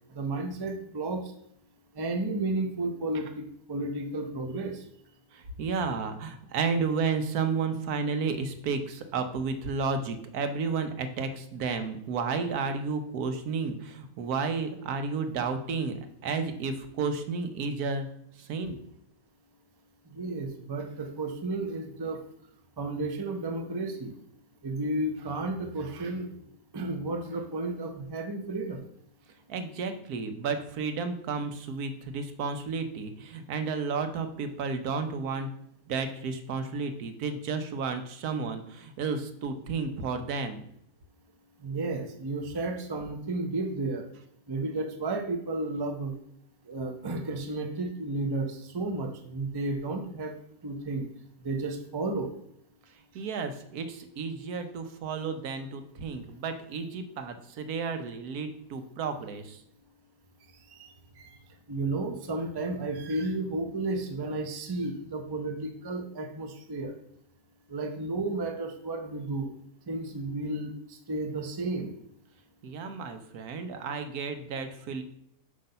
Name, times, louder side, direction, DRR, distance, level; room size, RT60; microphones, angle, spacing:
voice 1, 0.1-1.2 2.0-3.3 3.7-4.8 20.1-22.2 22.8-24.1 24.6-26.3 26.7-28.8 41.6-44.1 44.5-46.1 46.7-50.3 50.6-51.1 51.4-52.3 61.2-61.3 61.7-66.9 67.7-69.5 69.9-70.7 71.1-71.9, right 2 dB, 35° right, 5 dB, 0.4 m, -32 dB
voice 2, 5.3-18.1 18.4-18.8 29.5-35.5 35.9-40.6 53.1-59.6 72.6-75.0, right 5 dB, 80° right, 8 dB, 1.3 m, -32 dB
7.7 x 3.2 x 5.5 m, 0.70 s
omnidirectional pair, 1.6 m